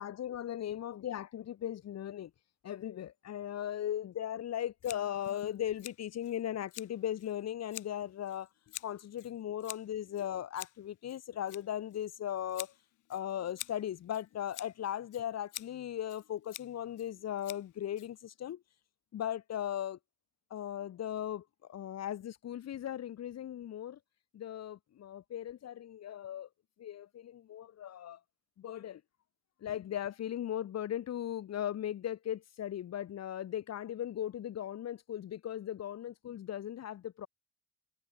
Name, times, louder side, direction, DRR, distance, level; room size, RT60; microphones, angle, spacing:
voice 1, 0.0-2.3 2.6-8.5 8.8-12.7 13.1-18.6 19.1-20.0 20.5-21.4 21.7-24.0 24.3-26.5 26.8-28.2 28.6-29.0 29.6-37.3, left 10 dB, 60° left, 1.2 m, -38 dB
Scissors, 4.8-18.5, left 14 dB, 85° left, 3.5 m, -50 dB
cardioid pair, 90°, 30 cm